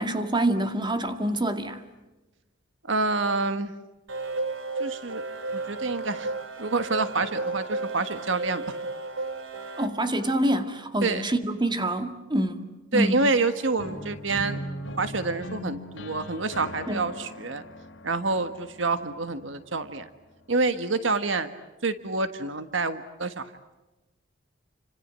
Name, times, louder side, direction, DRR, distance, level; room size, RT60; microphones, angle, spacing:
voice 1, 0.0-1.8 9.8-12.6 12.9-13.1 16.9-17.0, right 1 dB, 25° right, 2.0 m, -26 dB
voice 2, 2.9-3.7 4.8-5.2 5.5-6.3 6.6-8.6 11.0-11.2 12.9-14.6 15.0-17.6 18.0-20.1 20.5-21.5 21.8-23.5, right 3 dB, 75° right, 1.5 m, -27 dB
sound 1, 4.1-9.9, right 3 dB, 90° right, 2.8 m, -33 dB
sound 2, 13.8-19.7, left 1 dB, 70° left, 3.4 m, -39 dB
30.0 x 26.0 x 7.6 m
head